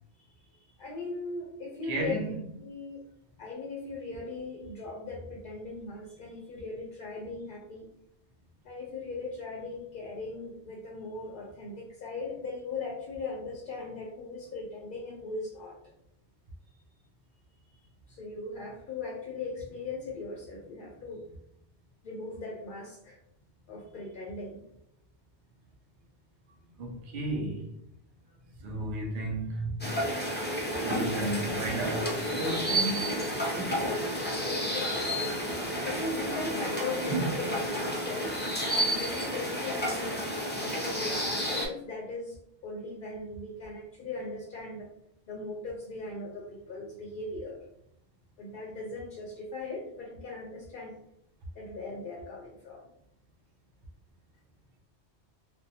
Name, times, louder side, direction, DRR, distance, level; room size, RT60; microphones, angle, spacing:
voice 1, 0.4-2.1 2.5-3.0 3.4-7.9 8.6-15.7 17.7-17.8 18.1-21.2 22.0-23.2 23.7-24.6 33.6-35.2 35.8-40.2 40.6-42.4 42.6-44.9 45.3-47.6 48.4-51.0 51.6-52.8, left 3 dB, 60° left, 0.6 m, -39 dB
voice 2, 1.8-2.4 26.8-27.7 28.6-29.8 30.8-33.2, right 2 dB, 60° right, 0.7 m, -33 dB
sound 1, 29.8-41.7, equal, 15° left, 0.3 m, -31 dB
2.5 x 2.1 x 2.7 m
omnidirectional pair, 1.1 m